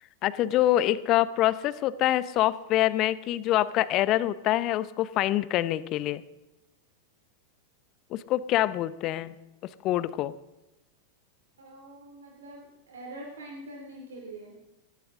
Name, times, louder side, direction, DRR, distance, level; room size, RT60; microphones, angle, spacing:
voice 1, 0.2-6.2 8.1-9.3 9.8-10.3, left 14 dB, 40° left, 16 dB, 0.8 m, -25 dB
voice 2, 11.6-14.6, right 1 dB, 70° right, 1 dB, 2.6 m, -44 dB
18.5 x 16.5 x 3.7 m, 0.95 s
figure-of-eight pair, 90°, 0 cm